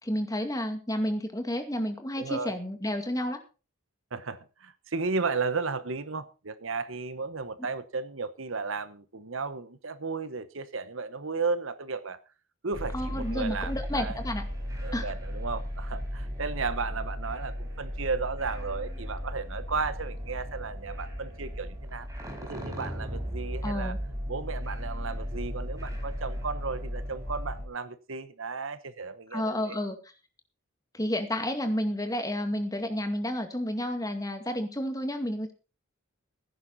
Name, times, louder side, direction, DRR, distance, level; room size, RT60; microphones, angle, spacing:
voice 1, 0.0-3.4 12.9-14.4 14.9-15.1 23.6-24.0 29.3-30.0 30.9-35.5, left 1 dB, 15° left, 2.1 m, -31 dB
voice 2, 2.2-2.6 4.1-12.2 12.6-14.2 14.8-22.1 22.4-24.0 24.3-29.8, right 4 dB, 70° right, 1.0 m, -34 dB
sound 1, 12.7-27.6, equal, 15° right, 4.9 m, -36 dB
16.5 x 10.0 x 4.2 m
head